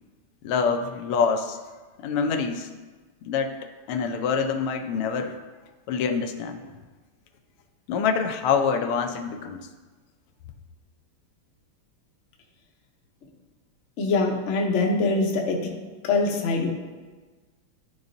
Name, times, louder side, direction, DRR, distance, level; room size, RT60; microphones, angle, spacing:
voice 1, 0.4-1.6 2.0-2.7 3.2-3.6 3.9-5.4 5.9-6.8 7.9-9.7, left 6 dB, 85° left, 6 dB, 1.5 m, -26 dB
voice 2, 14.0-15.6 16.0-16.7, left 3 dB, 55° left, 0 dB, 0.8 m, -23 dB
12.0 x 4.0 x 2.6 m, 1.3 s
omnidirectional pair, 2.4 m